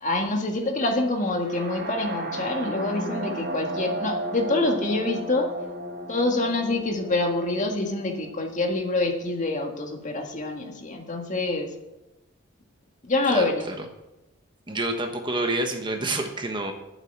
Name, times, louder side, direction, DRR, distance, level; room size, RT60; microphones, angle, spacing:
voice 1, 0.0-5.5 6.1-11.7 13.0-13.7, left 2 dB, 40° left, 3 dB, 1.8 m, -26 dB
sound 1, 1.4-9.3, right 1 dB, 55° right, 2.8 m, -34 dB
voice 2, 13.3-13.7 14.7-16.7, right 2 dB, 25° right, 4 dB, 1.2 m, -28 dB
9.1 x 7.7 x 9.0 m, 0.98 s
head